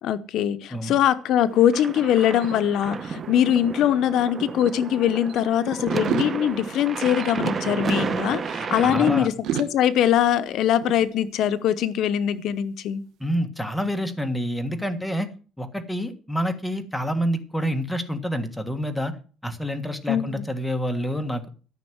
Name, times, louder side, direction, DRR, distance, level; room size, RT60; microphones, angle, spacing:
voice 1, 0.0-9.3 9.6-13.0 20.1-20.4, left 10 dB, 60° left, 13 dB, 0.7 m, -22 dB
sound 1, 1.4-4.3 4.6-5.4 5.9-9.0 9.4-11.7, right 10 dB, 70° right, 1.2 m, -37 dB
sound 2, 1.5-9.2, right 5 dB, 30° right, 0.9 m, -31 dB
voice 2, 8.8-9.3 13.2-15.3 15.6-19.2 19.4-21.4, equal, 5° left, 6 dB, 1.6 m, -27 dB
13.5 x 6.2 x 7.8 m, 0.38 s
cardioid pair, 145°, 0 cm